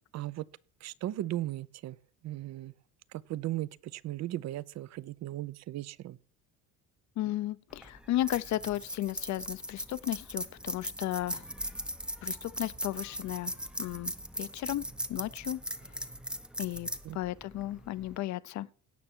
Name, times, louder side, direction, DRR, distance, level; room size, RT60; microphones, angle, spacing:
voice 1, 0.1-0.5 0.8-2.0 2.2-2.7 3.1-6.2 17.0-17.2, right 14 dB, 45° right, 0.6 m, -37 dB
voice 2, 7.2-11.4 12.2-13.5 13.8-14.1 14.4-14.8 15.1-15.6 16.6-16.9 17.1-18.7, left 14 dB, 50° left, 0.6 m, -34 dB
sound 1, 7.7-18.2, equal, ahead, 0.7 m, -39 dB
17.0 x 6.0 x 4.5 m
cardioid pair, 130°, 37 cm